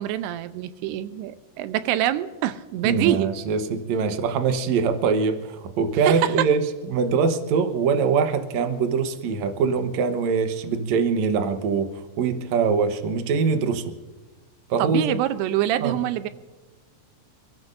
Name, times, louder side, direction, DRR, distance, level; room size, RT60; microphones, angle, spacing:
voice 1, 0.0-3.3 6.0-6.3 14.8-16.3, right 12 dB, 85° right, 12 dB, 2.7 m, -25 dB
voice 2, 2.8-13.9 14.7-15.2 15.8-16.0, right 5 dB, 70° right, 7 dB, 1.8 m, -23 dB
29.0 x 14.0 x 2.6 m, 1.3 s
omnidirectional pair, 4.7 m